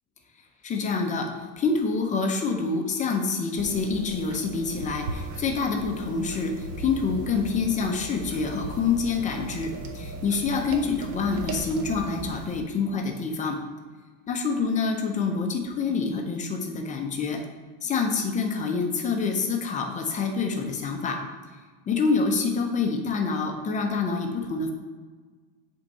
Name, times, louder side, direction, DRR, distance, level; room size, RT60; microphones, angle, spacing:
voice 1, 0.6-1.3 1.6-13.6 14.3-17.4 17.8-21.2 21.9-24.7, left 4 dB, 20° left, 3 dB, 0.5 m, -27 dB
sound 1, 3.6-12.6, right 3 dB, 45° right, 0.7 m, -38 dB
7.8 x 3.6 x 4.2 m, 1.4 s
cardioid pair, 160°, 40 cm